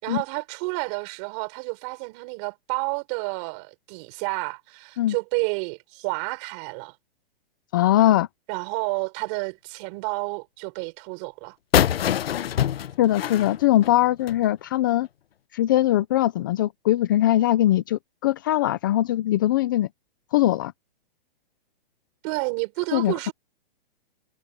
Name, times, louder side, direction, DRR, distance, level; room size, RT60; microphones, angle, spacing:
voice 1, 0.0-7.0 8.5-11.6 22.2-23.3, right 32 dB, 30° right, 5.3 m, -30 dB
voice 2, 7.7-8.3 13.0-15.1 15.5-19.9 20.3-20.7 22.9-23.3, left 14 dB, 20° left, 0.5 m, -21 dB
sound 1, 11.7-14.4, left 10 dB, 80° left, 0.9 m, -24 dB
hypercardioid pair, 165°, 29 cm